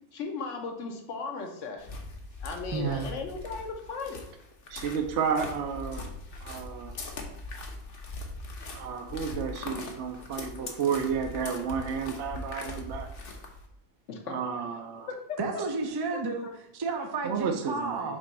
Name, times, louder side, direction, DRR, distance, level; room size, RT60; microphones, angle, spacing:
voice 1, 0.1-1.9 2.4-4.3 14.1-14.4 15.1-15.2 16.4-16.5, left 4 dB, 60° left, 3 dB, 1.2 m, -36 dB
sound 1, 1.8-13.7, left 2 dB, 45° left, 0.9 m, -41 dB
voice 2, 2.7-3.1 15.4-16.5 16.7-18.2, right 4 dB, 30° right, 4 dB, 0.4 m, -31 dB
voice 3, 4.7-6.1 6.4-6.9 8.7-13.1 14.3-15.1 17.2-18.1, right 6 dB, 60° right, 4 dB, 0.8 m, -32 dB
5.2 x 3.5 x 5.4 m, 0.80 s
omnidirectional pair, 1.5 m